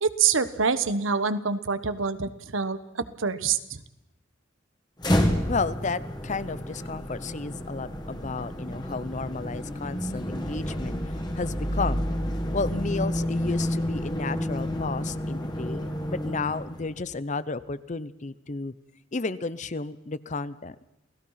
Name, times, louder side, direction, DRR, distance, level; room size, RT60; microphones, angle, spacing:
voice 1, 0.0-2.8 3.2-3.6, right 5 dB, 80° right, 12 dB, 1.2 m, -25 dB
sound 1, 5.0-17.0, equal, 20° left, 2.2 m, -30 dB
voice 2, 5.5-11.0 11.3-12.1 12.5-18.7 19.1-20.8, left 3 dB, 35° left, 16 dB, 0.7 m, -32 dB
28.5 x 17.5 x 5.8 m, 0.86 s
head